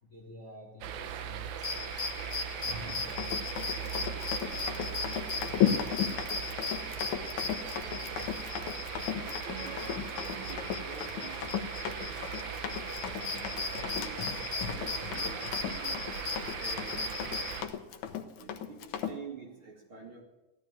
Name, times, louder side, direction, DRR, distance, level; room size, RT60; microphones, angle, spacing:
voice 1, 0.0-1.7 2.7-3.1 5.3-6.0, left 2 dB, 30° left, 0 dB, 2.3 m, -51 dB
sound 1, 0.8-17.6, right 9 dB, 80° right, 2.5 m, -39 dB
sound 2, 1.6-17.7, left 4 dB, 45° left, 1.7 m, -38 dB
voice 2, 2.3-3.1 6.6-11.6 13.7-17.2 17.9-18.0 18.3-20.2, right 4 dB, 45° right, 0 dB, 3.4 m, -49 dB
Run, 3.1-19.2, left 9 dB, 85° left, 2.5 m, -36 dB
15.5 x 12.0 x 7.3 m, 1.0 s
omnidirectional pair, 3.4 m